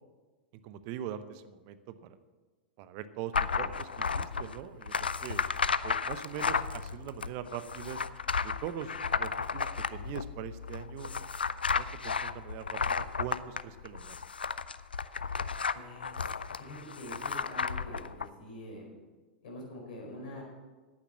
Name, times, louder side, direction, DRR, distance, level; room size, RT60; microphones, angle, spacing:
voice 1, 0.6-2.2 2.8-5.4 5.8-8.0 8.4-11.1 11.8-14.2, right 10 dB, 45° right, 12 dB, 0.8 m, -42 dB
sound 1, 3.3-18.3, left 5 dB, 80° left, 0.4 m, -33 dB
voice 2, 15.7-16.3 16.6-18.9 19.4-20.4, left 1 dB, 60° left, -1 dB, 4.6 m, -45 dB
9.9 x 9.0 x 7.2 m, 1.3 s
figure-of-eight pair, 95°, 5 cm